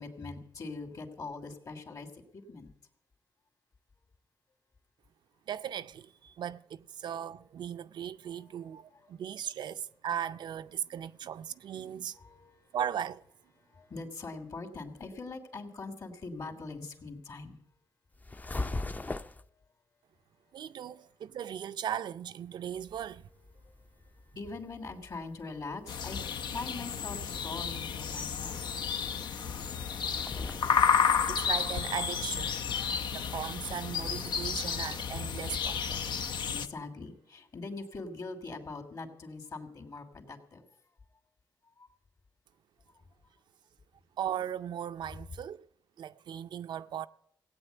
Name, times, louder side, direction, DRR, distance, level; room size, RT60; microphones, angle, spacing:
voice 1, 0.0-2.7 8.4-8.5 8.9-9.1 12.1-12.6 13.6-17.6 19.4-19.6 20.4-20.5 23.2-28.7 36.5-40.6 41.8-41.9, left 3 dB, 55° left, 2.7 m, -43 dB
voice 2, 5.5-12.2 12.7-13.2 20.5-23.3 30.5-30.7 31.3-32.6 33.1-36.1 44.2-45.7 46.0-47.1, right 9 dB, 80° right, 0.5 m, -37 dB
sound 1, 18.1-19.5 22.9-33.0, left 2 dB, 20° left, 0.5 m, -43 dB
sound 2, 25.9-36.7, left 7 dB, 85° left, 0.7 m, -31 dB
16.5 x 8.9 x 8.0 m
cardioid pair, 90°, 8 cm